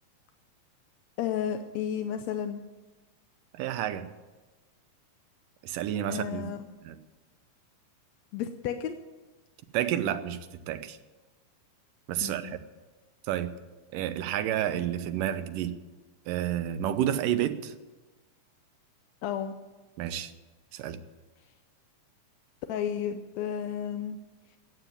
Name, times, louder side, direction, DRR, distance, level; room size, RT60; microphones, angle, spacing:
voice 1, 1.2-2.6 6.1-6.7 8.3-9.0 12.2-12.6 19.2-19.5 22.7-24.2, left 9 dB, 75° left, 7 dB, 1.7 m, -32 dB
voice 2, 3.5-4.1 5.6-6.5 6.8-7.0 9.7-11.0 12.1-12.6 13.3-13.5 13.9-15.7 16.3-17.7 20.0-20.3 20.7-21.0, right 11 dB, 85° right, 11 dB, 2.5 m, -30 dB
14.5 x 9.3 x 9.3 m, 1.2 s
omnidirectional pair, 3.8 m